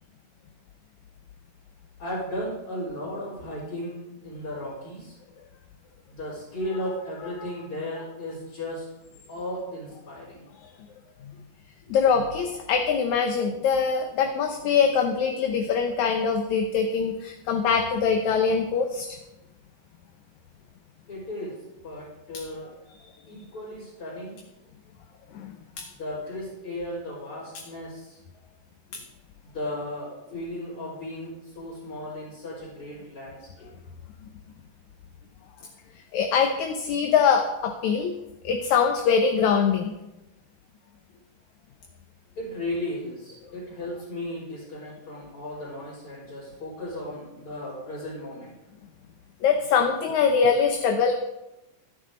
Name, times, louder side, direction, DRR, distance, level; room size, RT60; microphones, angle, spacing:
voice 1, 2.0-5.2 6.1-8.9 9.3-10.5 11.8-12.0 21.1-22.7 23.3-24.4 26.0-28.2 29.4-33.7 42.4-48.6, left 1 dB, 40° left, -9 dB, 5.4 m, -35 dB
voice 2, 7.2-7.5 11.9-19.2 25.3-25.8 28.9-29.0 36.1-38.1 38.4-39.9 49.4-51.2, left 6 dB, 70° left, 4 dB, 2.2 m, -23 dB
16.0 x 13.0 x 3.9 m, 0.97 s
omnidirectional pair, 3.9 m